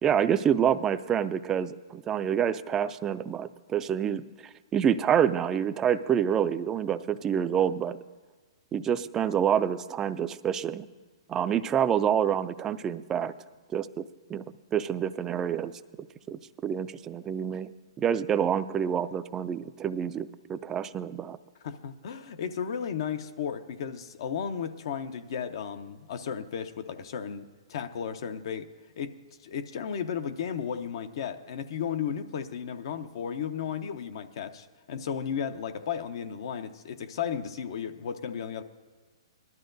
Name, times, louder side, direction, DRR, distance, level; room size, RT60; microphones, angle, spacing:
voice 1, 0.0-4.2 4.7-8.0 8.7-10.9 11.3-13.3 13.7-14.0 14.3-14.4 14.7-15.7 16.3-17.7 18.0-21.4, right 8 dB, 20° right, 13 dB, 0.3 m, -27 dB
voice 2, 21.6-28.7 29.0-29.1 29.4-38.6, left 7 dB, 60° left, 10 dB, 0.6 m, -34 dB
19.0 x 12.0 x 2.6 m, 1.3 s
hypercardioid pair, 140°, 3 cm